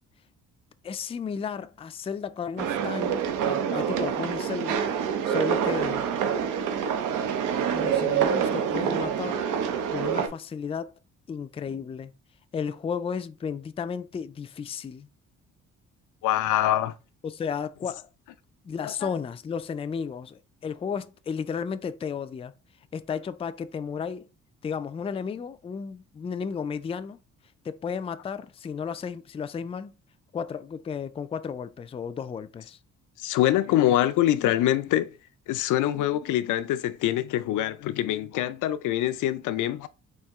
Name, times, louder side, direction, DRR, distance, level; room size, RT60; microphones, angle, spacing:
voice 1, 0.8-4.8 5.3-6.1 7.7-9.5 9.9-10.9 11.3-12.1 12.5-15.1 17.2-18.1 18.6-22.5 22.9-24.3 24.6-27.2 27.6-29.9 30.3-32.8, left 6 dB, 20° left, 0.3 m, -33 dB
sound 1, 2.6-10.3, right 8 dB, 90° right, 0.7 m, -26 dB
voice 2, 16.2-16.9 18.8-19.1 33.2-35.1 35.5-39.9, left 13 dB, 85° left, 0.5 m, -24 dB
4.3 x 2.8 x 3.5 m
cardioid pair, 90°, 30 cm